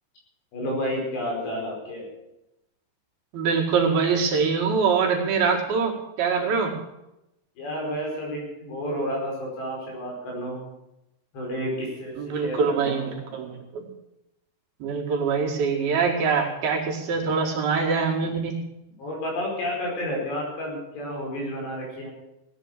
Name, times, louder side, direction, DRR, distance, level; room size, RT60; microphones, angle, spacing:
voice 1, 0.5-2.1 7.6-10.6 11.3-13.3 19.0-22.1, equal, 80° left, -1 dB, 7.0 m, -31 dB
voice 2, 3.3-6.7 12.2-13.9 14.8-18.6, right 5 dB, 65° right, -1 dB, 3.9 m, -24 dB
17.0 x 9.9 x 6.7 m, 0.90 s
omnidirectional pair, 4.8 m